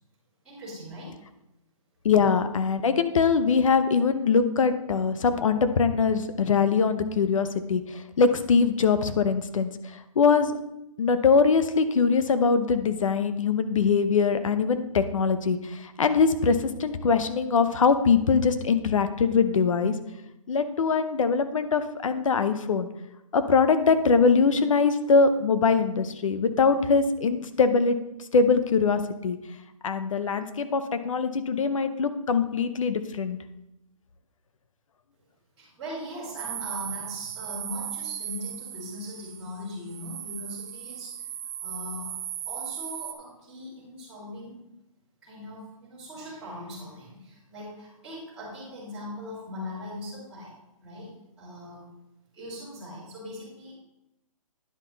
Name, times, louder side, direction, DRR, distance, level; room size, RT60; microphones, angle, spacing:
voice 1, 0.4-1.1 35.6-41.1 41.6-42.1 42.4-44.7 45.2-50.5 50.8-51.8 52.3-53.7, left 1 dB, 5° right, -17 dB, 3.5 m, -40 dB
voice 2, 2.0-7.8 8.2-9.7 10.2-10.5 11.0-15.6 16.0-19.9 20.5-22.9 23.3-28.0 28.3-29.4 29.8-33.4, left 5 dB, 65° left, 10 dB, 0.8 m, -22 dB
sound 1, 36.4-43.1, right 10 dB, 25° right, 0.6 m, -37 dB
9.8 x 5.7 x 4.0 m, 0.89 s
hypercardioid pair, 170°, 18 cm